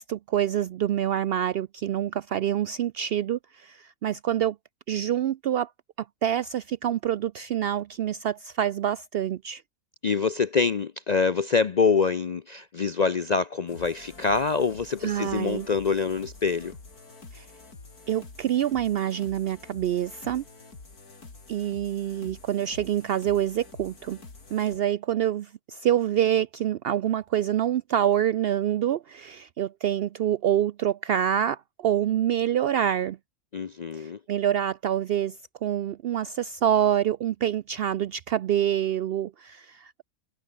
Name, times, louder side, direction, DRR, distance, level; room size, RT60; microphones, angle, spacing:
voice 1, 0.0-4.6 4.9-5.7 6.0-9.6 15.0-15.7 17.3-17.5 18.1-20.4 21.5-24.2 24.5-33.2 33.9-40.0, right 10 dB, 75° right, 0.5 m, -26 dB
voice 2, 10.0-16.7 33.5-34.2, left 5 dB, 65° left, 0.4 m, -25 dB
sound 1, 13.7-24.8, left 3 dB, 85° left, 4.2 m, -47 dB
omnidirectional pair, 1.6 m